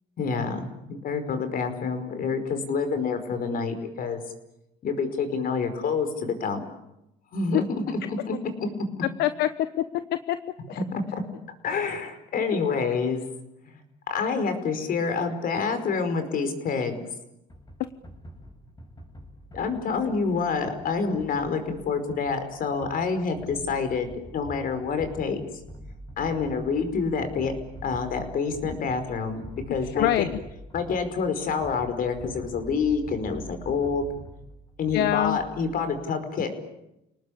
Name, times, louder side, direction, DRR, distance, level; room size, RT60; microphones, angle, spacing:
voice 1, 0.2-4.2 4.8-6.6 7.3-8.9 10.9-11.2 11.6-13.2 14.1-17.0 19.5-25.4 26.2-27.5 27.8-29.4 29.7-30.3 30.7-34.0 34.8-36.5, left 5 dB, 55° left, 9 dB, 5.1 m, -27 dB
voice 2, 9.2-10.4 10.7-10.8 30.0-30.3 34.9-35.4, left 13 dB, 80° left, 12 dB, 1.1 m, -25 dB
sound 1, 17.5-35.9, equal, 25° left, 6.9 m, -44 dB
29.0 x 19.0 x 8.6 m, 0.88 s
cardioid pair, 110°, 17 cm